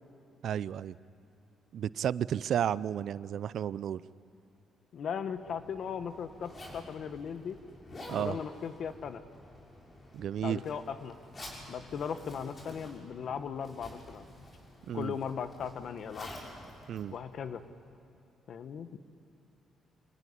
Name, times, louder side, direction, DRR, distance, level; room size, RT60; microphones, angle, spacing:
voice 1, 0.4-1.0 1.7-4.0 8.1-8.4 10.1-10.6 14.9-15.1 16.9-17.2, right 9 dB, 70° right, 19 dB, 0.5 m, -32 dB
voice 2, 4.9-7.6 8.2-9.2 10.4-11.1 11.7-14.2 14.9-16.4 17.1-17.6 18.5-19.0, left 7 dB, 60° left, 11 dB, 1.3 m, -38 dB
Zipper (clothing), 5.2-17.9, left 1 dB, 35° left, 6.7 m, -50 dB
25.5 x 18.5 x 10.0 m, 2.8 s
cardioid pair, 90°, 0 cm